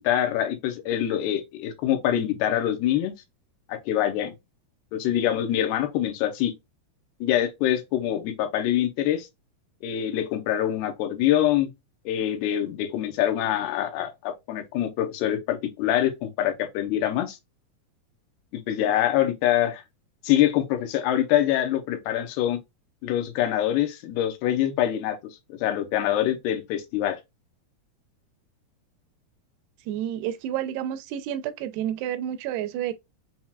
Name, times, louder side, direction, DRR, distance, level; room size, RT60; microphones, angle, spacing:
voice 1, 0.0-3.1 3.7-4.3 4.9-6.5 7.2-9.3 9.8-11.7 12.1-17.4 18.5-19.8 20.2-22.6 23.0-25.2 25.6-27.2, left 11 dB, 80° left, 2.6 m, -25 dB
voice 2, 29.9-32.9, right 11 dB, 80° right, 2.5 m, -30 dB
7.2 x 2.9 x 2.3 m
omnidirectional pair, 4.8 m